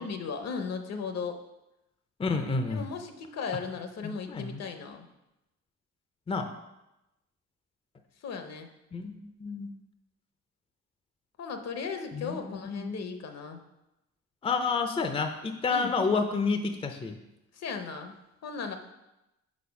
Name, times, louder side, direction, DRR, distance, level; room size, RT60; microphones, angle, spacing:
voice 1, 0.0-1.4 2.7-5.1 8.2-8.7 11.4-13.6 15.7-15.9 17.5-18.1 18.4-18.8, left 5 dB, 60° left, 6 dB, 0.8 m, -36 dB
voice 2, 2.2-2.8 4.0-4.6 6.3-6.5 8.9-9.1 9.4-9.7 12.1-12.9 14.4-17.2, left 4 dB, 20° left, 6 dB, 0.5 m, -29 dB
4.5 x 4.2 x 5.7 m, 0.93 s
cardioid pair, 90°, 30 cm